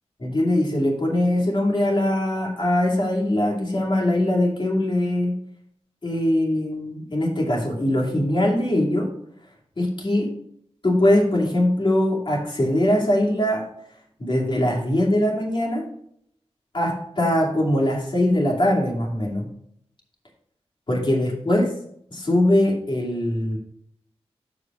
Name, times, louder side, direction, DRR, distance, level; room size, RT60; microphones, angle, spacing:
voice 1, 0.2-5.4 6.0-9.1 9.8-10.3 10.8-13.6 14.2-15.8 16.7-19.5 20.9-21.7 22.1-23.6, left 1 dB, 50° left, -2 dB, 2.6 m, -21 dB
6.7 x 5.1 x 6.2 m, 0.69 s
wide cardioid pair, 75°, 11 cm